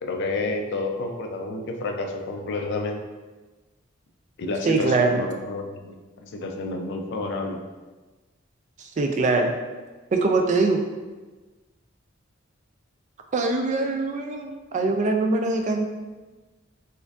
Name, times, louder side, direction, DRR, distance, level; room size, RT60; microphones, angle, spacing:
voice 1, 0.0-3.0 4.4-7.6, left 2 dB, 60° left, 3 dB, 0.4 m, -30 dB
voice 2, 4.7-5.2 8.8-9.5 10.1-10.8 13.3-15.8, right 3 dB, 40° right, 4 dB, 0.3 m, -23 dB
4.3 x 2.6 x 2.3 m, 1.3 s
head